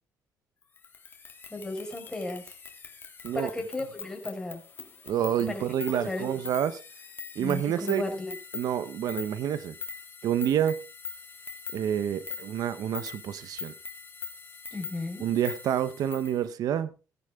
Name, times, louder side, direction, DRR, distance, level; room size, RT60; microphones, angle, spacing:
sound 1, 0.8-16.4, left 5 dB, 30° left, 2.7 m, -43 dB
voice 1, 1.5-2.4 3.3-4.6 5.5-5.6 5.9-6.3 7.4-8.3 14.7-15.2, left 2 dB, 10° left, 3 dB, 4.8 m, -34 dB
voice 2, 5.1-6.8 7.4-8.0 8.5-9.7 10.2-10.8 11.7-13.7 15.2-16.9, right 10 dB, 70° right, 14 dB, 0.9 m, -28 dB
17.5 x 10.5 x 3.6 m, 0.33 s
cardioid pair, 115°, 7 cm